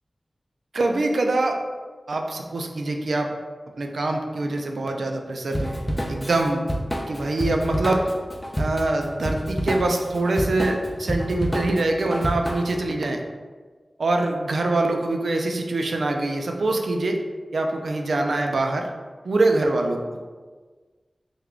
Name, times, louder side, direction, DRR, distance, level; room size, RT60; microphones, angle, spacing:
voice 1, 0.7-1.6 2.1-3.3 3.8-6.6 7.1-8.1 8.6-13.2 14.0-17.2 17.5-18.9 19.2-20.2, right 2 dB, 90° right, 2 dB, 0.4 m, -24 dB
Drum kit / Drum, 5.5-12.8, equal, 15° left, 0.4 m, -29 dB
3.4 x 2.3 x 3.6 m, 1.4 s
wide cardioid pair, 60°, 0 cm